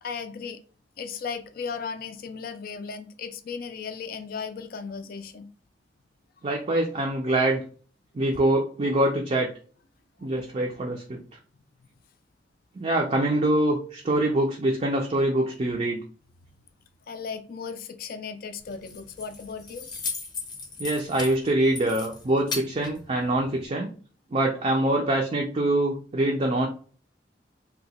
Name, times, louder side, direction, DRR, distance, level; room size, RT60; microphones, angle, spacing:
voice 1, 0.0-0.6 1.0-5.5 17.1-19.9, left 5 dB, 50° left, 9 dB, 0.3 m, -36 dB
voice 2, 6.4-7.6 8.1-9.5 10.2-11.2 12.8-16.0 20.8-23.9 24.3-26.7, right 1 dB, 35° right, 0 dB, 0.4 m, -24 dB
Keys jangling, 18.6-23.7, left 4 dB, 25° left, 0.7 m, -37 dB
2.8 x 2.2 x 4.1 m, 0.42 s
head